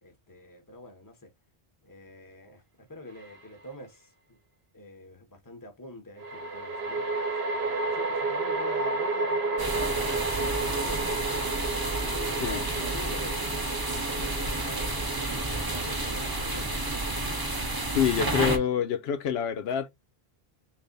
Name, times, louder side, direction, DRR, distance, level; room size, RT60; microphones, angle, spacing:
voice 1, 0.0-1.3 1.8-4.4 4.7-11.5 12.0-13.6 13.9-15.2 15.4-17.0, left 1 dB, 20° left, 0.9 m, -45 dB
sound 1, 3.2-3.3 6.2-17.6, right 3 dB, 80° right, 1.0 m, -32 dB
sound 2, 9.6-18.6, right 2 dB, 25° right, 0.8 m, -31 dB
voice 2, 17.9-19.9, left 8 dB, 85° left, 0.8 m, -26 dB
3.4 x 2.5 x 3.8 m
omnidirectional pair, 1.0 m